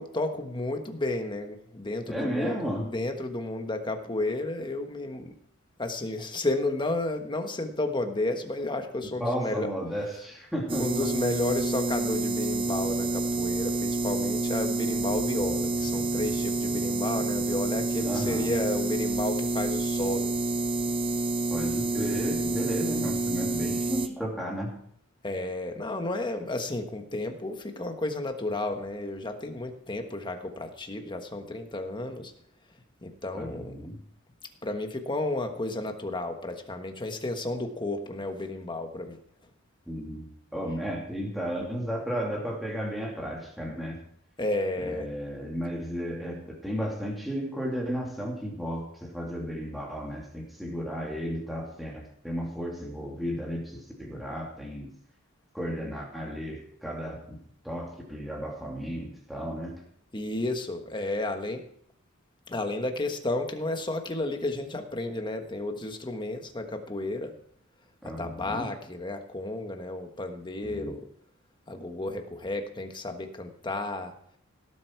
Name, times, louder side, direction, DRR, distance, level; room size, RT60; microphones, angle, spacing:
voice 1, 0.0-5.3 5.8-9.7 10.8-20.4 25.2-32.3 33.0-33.8 34.6-39.2 44.4-45.1 60.1-61.6 62.5-67.3 68.2-71.0 71.7-74.1, left 2 dB, 20° left, 5 dB, 1.3 m, -32 dB
voice 2, 2.1-2.9 9.2-11.1 18.1-18.6 21.5-24.8 33.3-34.0 39.9-44.0 44.8-54.9 55.5-59.8 68.0-68.7 70.6-70.9, equal, ahead, -2 dB, 2.6 m, -34 dB
sound 1, 10.7-24.1, right 2 dB, 25° right, 0.7 m, -28 dB
17.5 x 8.0 x 4.6 m, 0.65 s
head